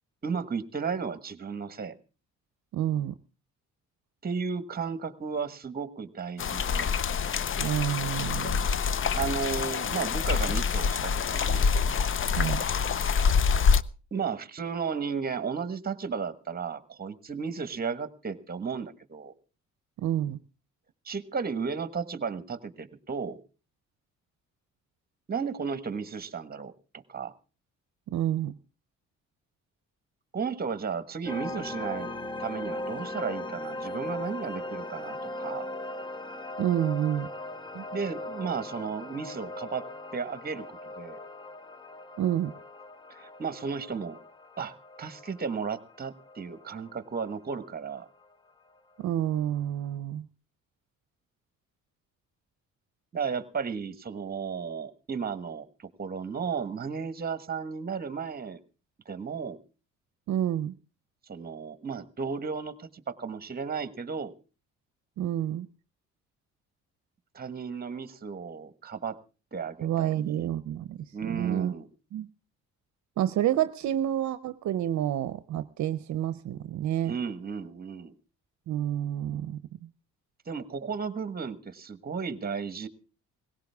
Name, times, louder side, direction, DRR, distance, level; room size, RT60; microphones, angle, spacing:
voice 1, 0.2-1.9 4.2-7.0 9.1-11.7 14.1-19.3 21.0-23.4 25.3-27.3 30.3-32.1 32.4-35.7 37.9-39.9 40.1-41.2 43.1-44.2 44.6-48.1 53.1-58.6 59.0-59.6 61.3-64.3 67.3-69.2 69.5-70.5 71.1-71.9 77.0-78.2 80.4-82.9, right 5 dB, 30° right, 13 dB, 1.4 m, -34 dB
voice 2, 2.7-3.1 7.6-8.6 12.3-12.6 20.0-20.4 28.1-28.5 36.6-37.3 37.7-37.8 42.2-42.5 49.0-50.3 60.3-60.7 65.2-65.7 69.8-71.7 72.1-72.3 73.2-77.1 78.7-79.9, right 11 dB, 70° right, 14 dB, 0.7 m, -29 dB
sound 1, 6.4-13.8, left 6 dB, 45° left, 0.6 m, -26 dB
sound 2, 31.3-48.2, left 1 dB, 15° left, 1.0 m, -39 dB
19.0 x 16.5 x 3.5 m, 0.34 s
cardioid pair, 90°, 30 cm